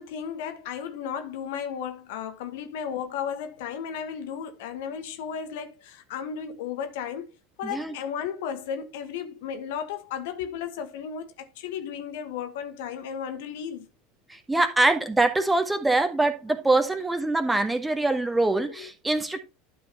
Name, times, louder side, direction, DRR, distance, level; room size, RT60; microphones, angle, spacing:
voice 1, 0.0-7.3 7.6-13.9 18.7-18.9, left 8 dB, 65° left, 1.3 m, -34 dB
voice 2, 7.6-7.9 14.3-19.4, right 2 dB, 10° right, 1.7 m, -24 dB
12.0 x 4.8 x 4.2 m
hypercardioid pair, 80°, 0 cm